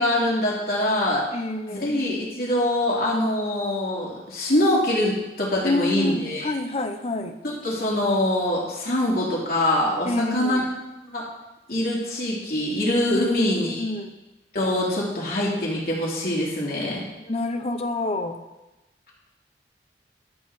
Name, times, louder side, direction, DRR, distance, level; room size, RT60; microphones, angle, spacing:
voice 1, 0.0-1.2 1.7-6.5 7.4-10.6 11.0-11.2 11.7-13.8 14.5-17.0, left 1 dB, 55° left, -5 dB, 3.3 m, -24 dB
voice 2, 1.3-1.9 5.6-7.4 10.0-10.6 13.1-13.5 13.8-14.2 17.3-18.4, left 2 dB, 35° left, 7 dB, 0.7 m, -27 dB
13.5 x 4.8 x 6.3 m, 1.0 s
head